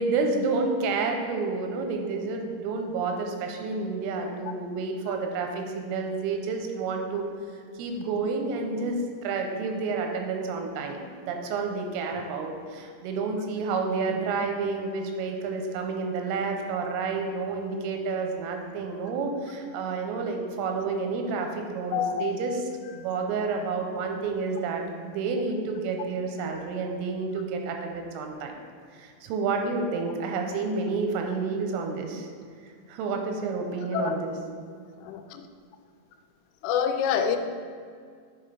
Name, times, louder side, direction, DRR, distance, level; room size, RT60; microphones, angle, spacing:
voice 1, 0.0-7.3 7.8-22.6 22.9-28.6 28.9-32.3 32.9-34.3, right 4 dB, 90° right, 3 dB, 3.4 m, -30 dB
voice 2, 21.9-22.3 33.9-34.2 35.0-35.4 36.6-37.4, left 8 dB, 85° left, 7 dB, 3.0 m, -26 dB
7.8 x 4.4 x 5.1 m, 2.1 s
omnidirectional pair, 5.6 m